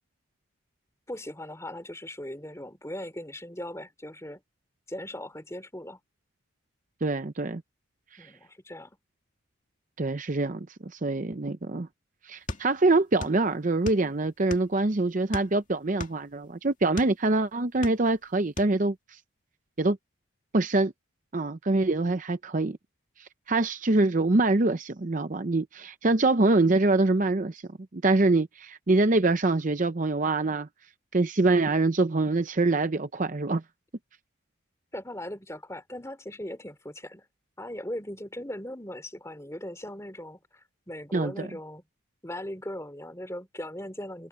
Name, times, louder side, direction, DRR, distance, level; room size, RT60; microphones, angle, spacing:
voice 1, 1.1-4.4 4.9-6.0 8.2-9.0 34.9-37.2 37.6-41.8 42.2-44.3, left 1 dB, 15° left, 3.0 m, -39 dB
voice 2, 7.0-7.6 8.1-8.3 10.0-11.9 12.2-19.2 19.8-20.0 20.5-20.9 21.3-22.8 23.2-27.6 27.9-30.7 31.1-33.6 41.1-41.5, right 2 dB, 40° right, 0.6 m, -25 dB
sound 1, 12.5-13.4 13.7-14.8 15.3-17.2 17.6-18.3 18.6-18.8, left 2 dB, 35° left, 2.1 m, -37 dB
head